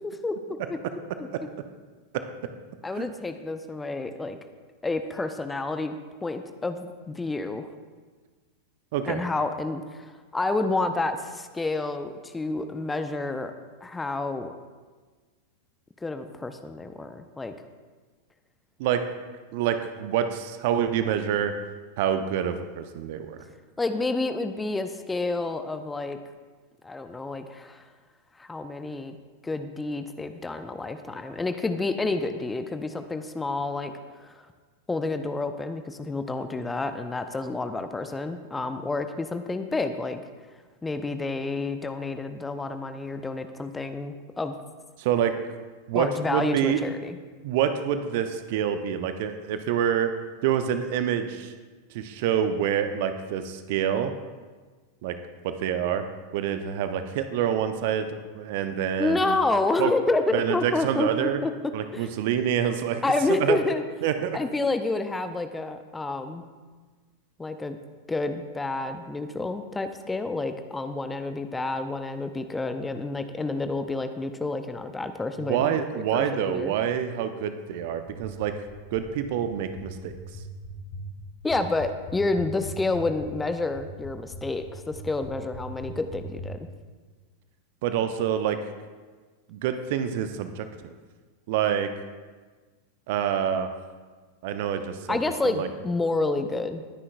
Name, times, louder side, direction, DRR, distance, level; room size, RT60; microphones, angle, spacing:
voice 1, 0.0-0.8 1.2-1.3 2.8-4.4 4.8-5.9 6.2-7.7 9.1-13.5 13.8-14.5 16.0-17.5 23.8-26.2 26.8-27.8 28.4-29.2 29.4-33.9 34.4-34.5 34.9-40.2 40.8-44.6 45.9-47.2 59.0-61.5 61.9-62.1 63.0-63.8 64.3-66.5 67.4-67.8 68.1-76.7 81.4-86.7 95.1-96.8, left 3 dB, 10° left, 8 dB, 0.7 m, -29 dB
voice 2, 19.5-21.5 22.0-23.4 45.0-45.3 45.9-47.0 47.4-50.1 50.4-51.5 51.9-54.1 55.0-55.2 55.4-56.0 56.3-59.4 59.8-59.9 60.3-61.4 61.7-63.0 63.3-63.6 64.0-64.4 75.4-78.5 78.9-80.1 87.8-88.6 89.5-90.9 91.5-91.9 93.1-93.7 94.4-95.2 95.4-95.7, right 9 dB, 50° right, 9 dB, 0.8 m, -27 dB
sound 1, 78.1-86.5, left 2 dB, 40° left, 2.7 m, -40 dB
20.0 x 9.8 x 2.5 m, 1.4 s
figure-of-eight pair, 90°, 0 cm